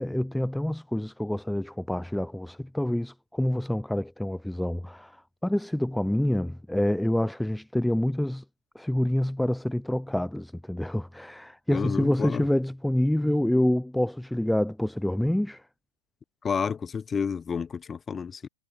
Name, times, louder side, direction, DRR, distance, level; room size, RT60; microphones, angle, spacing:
voice 1, 0.0-5.1 5.4-8.4 8.8-15.6, left 1 dB, ahead, 1.8 m, -27 dB
voice 2, 11.7-12.5 16.4-18.5, left 6 dB, 20° left, 6.7 m, -30 dB
hypercardioid pair, 105°, 0 cm